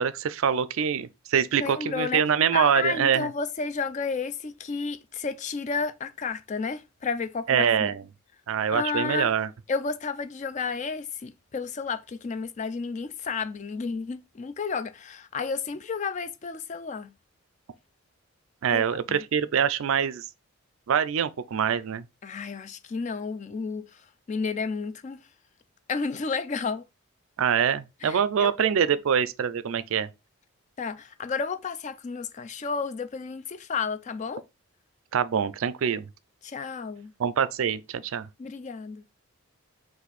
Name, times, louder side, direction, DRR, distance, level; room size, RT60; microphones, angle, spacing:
voice 1, 0.0-3.3 7.5-8.0 8.5-9.5 18.6-20.3 20.9-22.0 27.4-30.1 35.1-36.1 37.2-38.3, right 7 dB, 65° right, 0.4 m, -24 dB
voice 2, 1.6-2.2 2.5-7.9 8.7-9.3 9.7-17.1 18.7-19.2 22.2-23.9 24.3-25.2 25.9-26.8 28.0-28.5 30.8-34.4 36.4-37.1 38.4-39.0, left 5 dB, 30° left, 0.3 m, -32 dB
4.2 x 2.6 x 4.0 m
head